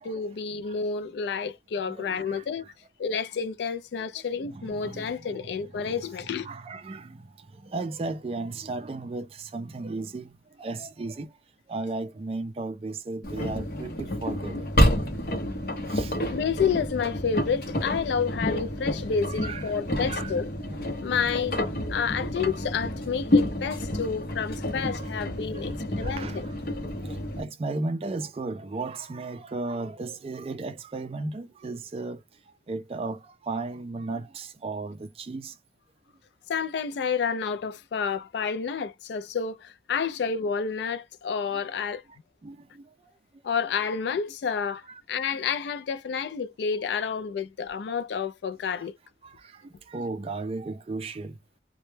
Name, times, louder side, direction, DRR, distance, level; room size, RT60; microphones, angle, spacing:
voice 1, 0.0-2.6 3.0-6.5 16.3-20.5 21.0-21.6 21.9-26.5 36.5-42.0 43.4-44.8 45.1-49.0, left 6 dB, 75° left, 0.3 m, -29 dB
voice 2, 1.8-2.5 4.4-7.3 7.5-10.3 10.6-11.3 11.7-14.7 15.9-16.1 19.2-20.3 20.6-20.7 25.0-25.1 25.5-26.5 27.0-32.2 32.7-35.5 41.5-41.6 42.4-42.8 44.9-45.0 45.3-45.4 49.2-51.4, right 3 dB, 35° right, 0.3 m, -35 dB
Engine, 13.2-27.4, left 1 dB, 55° left, 0.7 m, -29 dB
2.1 x 2.1 x 3.1 m
head